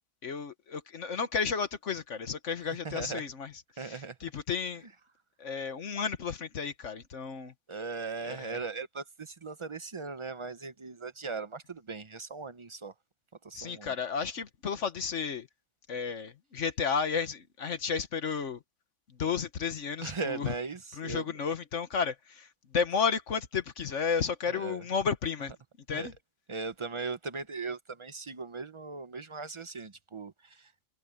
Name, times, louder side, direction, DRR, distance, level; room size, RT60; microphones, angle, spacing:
voice 1, 0.2-3.5 3.8-4.8 5.4-7.5 8.2-8.6 13.5-15.5 15.9-18.6 19.2-20.5 21.0-22.5 22.7-25.5 25.9-26.1, left 6 dB, 55° left, 1.4 m, -32 dB
voice 2, 2.8-3.2 3.8-4.2 7.7-12.9 13.4-13.9 20.0-21.3 24.5-24.8 25.9-26.1 26.5-30.7, right 4 dB, 40° right, 0.4 m, -38 dB
omnidirectional pair, 1.6 m